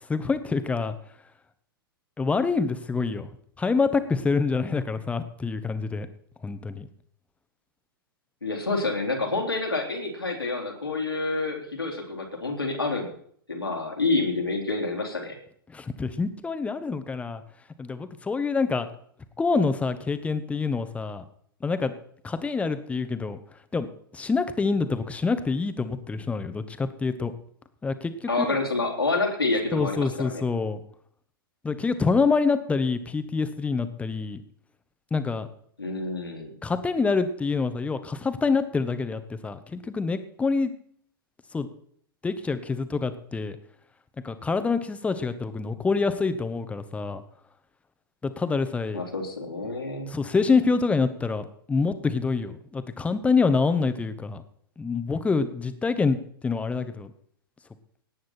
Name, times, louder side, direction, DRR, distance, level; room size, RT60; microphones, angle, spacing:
voice 1, 0.1-0.9 2.2-3.3 3.6-6.1 6.4-6.9 15.7-17.4 17.8-18.9 19.4-21.2 21.6-21.9 22.2-23.4 23.7-27.3 27.8-28.6 29.7-30.8 31.6-34.4 35.1-35.5 36.6-40.7 41.5-41.7 42.2-43.6 44.2-47.2 48.2-49.0 50.1-54.4 54.8-57.1, left 4 dB, 10° left, 11 dB, 1.2 m, -26 dB
voice 2, 8.4-13.1 13.5-15.4 28.3-30.4 35.8-36.6 48.9-50.1, left 3 dB, 85° left, 0 dB, 3.7 m, -28 dB
18.0 x 9.4 x 4.4 m, 0.62 s
figure-of-eight pair, 100°, 12 cm